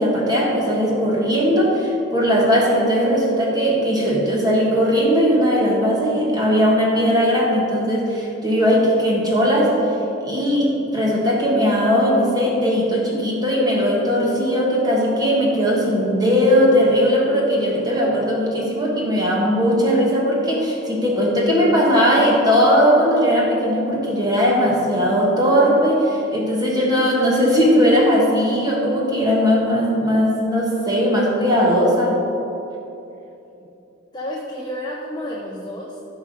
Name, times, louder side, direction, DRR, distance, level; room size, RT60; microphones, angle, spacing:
voice 1, 0.0-9.9 10.2-32.2, equal, 20° right, -3 dB, 1.5 m, -18 dB
voice 2, 17.9-18.3 33.6-33.7 34.1-36.0, left 1 dB, 20° left, -2 dB, 0.8 m, -31 dB
14.0 x 5.2 x 5.3 m, 2.9 s
head